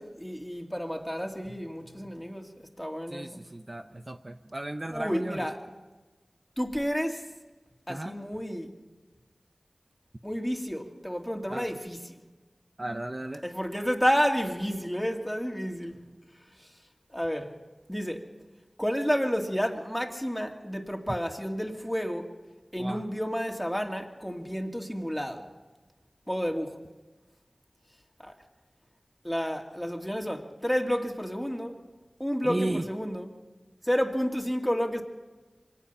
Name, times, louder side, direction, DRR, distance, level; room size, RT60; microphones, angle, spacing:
voice 1, 0.0-3.4 4.9-5.6 6.6-7.2 7.9-8.7 10.2-12.1 13.4-16.0 17.1-17.5 17.9-18.3 18.8-22.3 22.7-25.4 26.3-26.8 28.2-28.3 29.2-31.8 32.2-33.3 33.8-35.0, equal, 5° left, 2.4 m, -30 dB
voice 2, 3.1-5.5 7.9-8.1 11.5-11.7 12.8-13.4 22.8-23.0 32.4-32.9, right 1 dB, 35° right, 0.8 m, -34 dB
25.0 x 18.5 x 5.6 m
wide cardioid pair, 55°, 0 cm